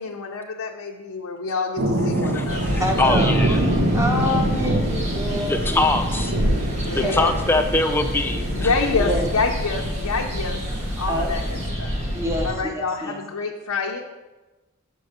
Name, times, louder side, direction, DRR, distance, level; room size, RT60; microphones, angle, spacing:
voice 1, 0.0-2.8 6.8-7.3 8.5-10.6 11.0-11.4 11.8-12.0 12.4-14.0, left 4 dB, 80° left, 0 dB, 0.6 m, -27 dB
sound 1, 1.8-11.7, right 1 dB, 70° right, 1.0 m, -26 dB
voice 2, 2.2-3.6 5.5-6.3 6.9-8.7, left 2 dB, 10° left, 5 dB, 0.5 m, -23 dB
sound 2, 2.5-12.5, equal, 30° right, 1.4 m, -27 dB
voice 3, 2.8-6.0 6.9-7.3 9.0-9.3 11.1-11.3 12.1-13.2, left 1 dB, 15° right, 2 dB, 0.8 m, -27 dB
6.4 x 4.6 x 6.5 m, 1.1 s
head